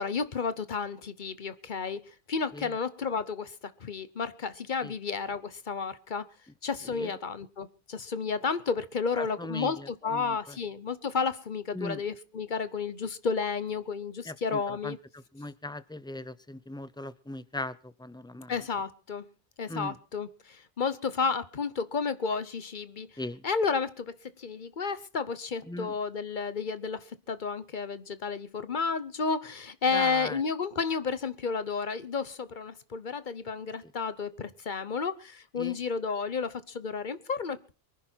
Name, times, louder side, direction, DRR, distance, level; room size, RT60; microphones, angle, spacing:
voice 1, 0.0-3.5 3.8-6.3 6.6-15.0 18.5-19.3 19.6-23.1 23.4-37.7, left 5 dB, 45° left, 14 dB, 1.0 m, -32 dB
voice 2, 9.1-10.6 11.7-12.0 14.2-18.6 19.7-19.9 23.2-23.4 25.7-26.0 29.9-30.4 35.6-35.8, left 2 dB, 5° left, 15 dB, 0.4 m, -39 dB
23.5 x 10.5 x 4.5 m, 0.37 s
omnidirectional pair, 1.1 m